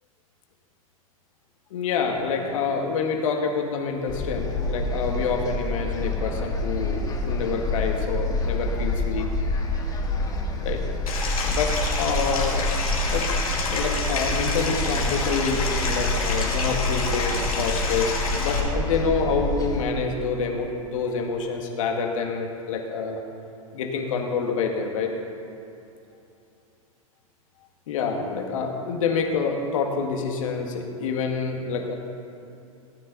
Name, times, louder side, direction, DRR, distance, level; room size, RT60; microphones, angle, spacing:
voice 1, 1.7-9.2 10.6-10.8 11.4-11.7 12.0-12.7 13.1-13.3 13.7-23.2 23.7-25.1 27.9-31.9, left 5 dB, 65° left, 2 dB, 1.8 m, -27 dB
sound 1, 4.1-19.8, left 2 dB, 20° left, 1.6 m, -27 dB
Stream, 11.1-18.6, left 3 dB, 85° left, 2.6 m, -29 dB
17.0 x 9.5 x 4.1 m, 2.7 s
hypercardioid pair, 100°, 18 cm